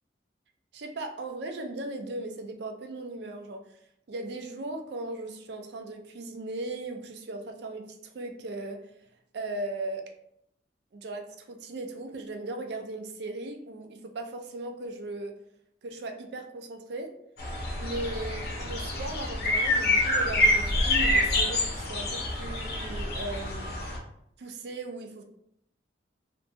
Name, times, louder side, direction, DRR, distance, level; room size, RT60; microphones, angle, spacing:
voice 1, 0.7-3.8 4.1-8.9 9.3-10.0 10.9-15.3 15.8-17.1 17.8-23.7 24.4-25.2, right 2 dB, 65° right, 5 dB, 0.4 m, -37 dB
sound 1, 17.4-24.0, left 1 dB, 60° left, 0.6 m, -27 dB
2.6 x 2.5 x 2.3 m, 0.74 s
head